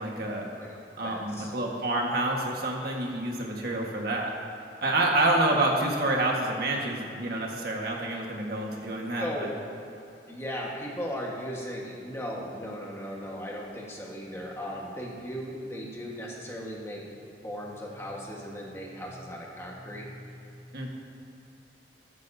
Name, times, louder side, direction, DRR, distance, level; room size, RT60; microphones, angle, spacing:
voice 1, 0.0-0.5 1.0-4.3 4.8-9.5 20.7-20.9, right 2 dB, 60° right, -1 dB, 1.6 m, -28 dB
voice 2, 0.6-1.5 3.6-4.0 9.2-9.5 10.3-20.9, equal, 15° left, -3 dB, 1.5 m, -37 dB
14.0 x 13.0 x 2.8 m, 2.7 s
head